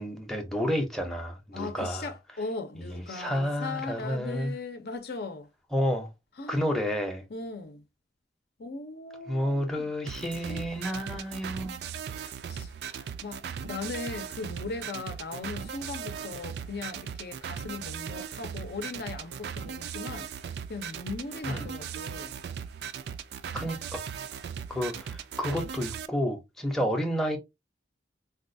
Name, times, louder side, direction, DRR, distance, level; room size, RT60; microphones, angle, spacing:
voice 1, 0.0-2.1 2.8-4.5 5.7-6.1 6.5-7.2 9.3-11.8 12.9-13.0 21.5-21.7 23.5-23.8 24.7-27.4, equal, ahead, 0.6 m, -30 dB
voice 2, 1.5-5.5 6.4-6.6 7.3-7.8 8.6-9.9 10.5-10.7 12.2-12.7 13.2-22.4 26.8-26.9, left 3 dB, 60° left, 0.6 m, -38 dB
sound 1, 10.1-26.1, right 7 dB, 60° right, 0.3 m, -38 dB
4.0 x 2.3 x 2.6 m
head